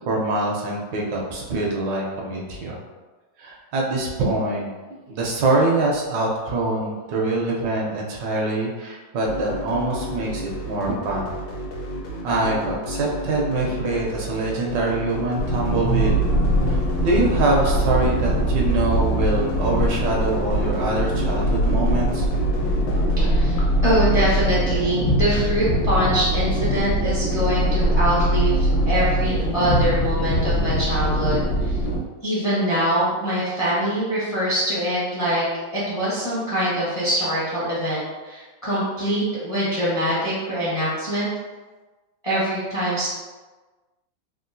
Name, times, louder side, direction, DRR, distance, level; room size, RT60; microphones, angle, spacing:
voice 1, 0.0-2.8 3.4-4.7 5.1-11.3 12.2-16.2 16.7-22.3, right 2 dB, 75° right, -2 dB, 1.2 m, -24 dB
sound 1, 9.2-23.2, equal, 85° left, 1.4 m, -32 dB
sound 2, 15.4-32.0, equal, 70° left, 1.4 m, -22 dB
voice 2, 23.2-31.8 32.2-35.5 35.7-41.3 42.2-43.1, right 1 dB, 40° left, -10 dB, 0.4 m, -24 dB
3.6 x 2.3 x 2.6 m, 1.3 s
omnidirectional pair, 2.1 m